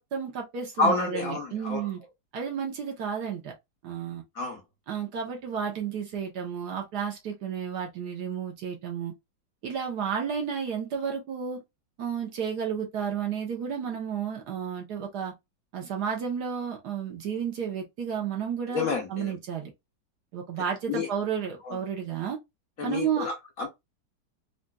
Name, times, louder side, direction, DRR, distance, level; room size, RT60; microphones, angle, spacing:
voice 1, 0.0-2.0 2.3-3.5 3.8-4.2 4.9-9.1 9.6-11.6 12.0-15.3 15.7-19.7 20.3-22.4 22.8-23.3, right 7 dB, 65° right, 1.3 m, -32 dB
voice 2, 0.8-1.9 4.4-4.6 18.7-19.3 20.9-21.1 21.6-21.8 22.8-23.7, left 3 dB, 60° left, 1.0 m, -29 dB
4.0 x 2.3 x 2.3 m
omnidirectional pair, 2.1 m